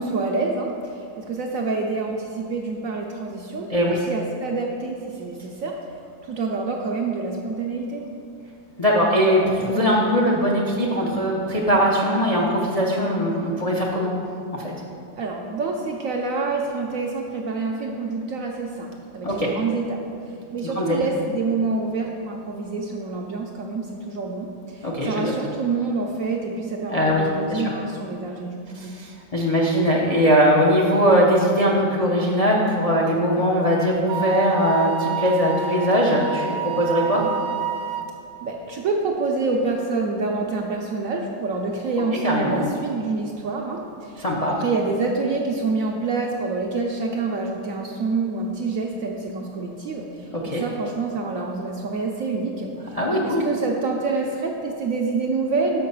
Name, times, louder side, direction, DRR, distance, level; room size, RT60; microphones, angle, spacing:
voice 1, 0.0-5.7 6.3-8.0 15.2-20.0 20.5-28.9 38.4-44.2 44.5-50.1 50.5-52.7 53.2-55.9, right 3 dB, 70° right, 0 dB, 0.8 m, -27 dB
voice 2, 8.8-14.1 14.5-14.7 19.2-19.5 20.6-21.0 24.8-25.3 26.9-27.7 28.7-37.2 42.2-42.6 44.2-44.6 50.3-50.6 52.9-53.4, equal, 50° left, -3 dB, 0.4 m, -20 dB
Wind instrument woodwind instrument, 34.1-38.1, right 8 dB, 90° right, 1.3 m, -29 dB
6.5 x 5.7 x 5.4 m, 2.5 s
omnidirectional pair, 1.9 m